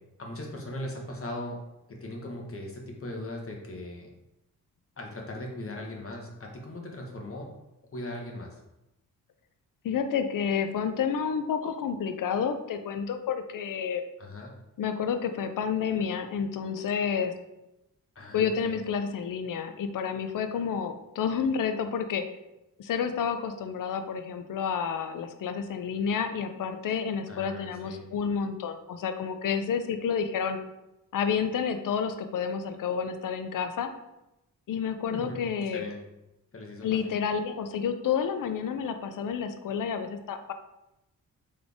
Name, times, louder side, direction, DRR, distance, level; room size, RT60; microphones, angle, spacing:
voice 1, 0.2-1.6 1.9-4.1 5.0-7.5 7.9-8.6 14.2-14.5 18.1-18.8 27.3-28.1 35.1-35.4 35.7-36.0 36.5-37.1, left 1 dB, 40° left, 1 dB, 1.1 m, -39 dB
voice 2, 9.8-14.0 14.8-17.3 18.3-22.2 22.8-30.6 31.1-33.9 34.7-35.8 36.8-40.5, left 7 dB, 60° left, 8 dB, 0.6 m, -30 dB
4.0 x 3.3 x 3.4 m, 0.92 s
cardioid pair, 65°, 36 cm